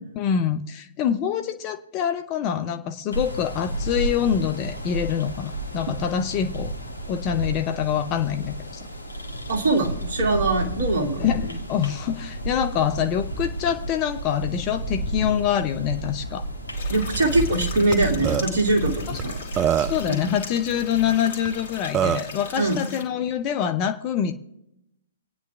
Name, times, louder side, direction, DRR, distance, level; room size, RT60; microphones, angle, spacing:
voice 1, 0.2-6.7 7.1-8.9 11.2-16.4 19.8-24.3, left 9 dB, 30° left, 8 dB, 0.7 m, -25 dB
sound 1, 3.1-22.8, right 1 dB, 80° left, 1.5 m, -32 dB
voice 2, 9.5-11.3 16.9-19.4 20.1-20.2 22.6-22.8, right 2 dB, 55° right, 3 dB, 2.2 m, -22 dB
sound 2, 16.7-23.0, left 4 dB, 55° left, 2.4 m, -39 dB
Burping eructation, 17.9-18.0 18.2-18.4 19.2-19.3 19.6-20.1 21.5-21.6 21.9-22.3, right 9 dB, 20° right, 0.4 m, -22 dB
27.0 x 9.3 x 2.4 m, 0.88 s
figure-of-eight pair, 120°, 0 cm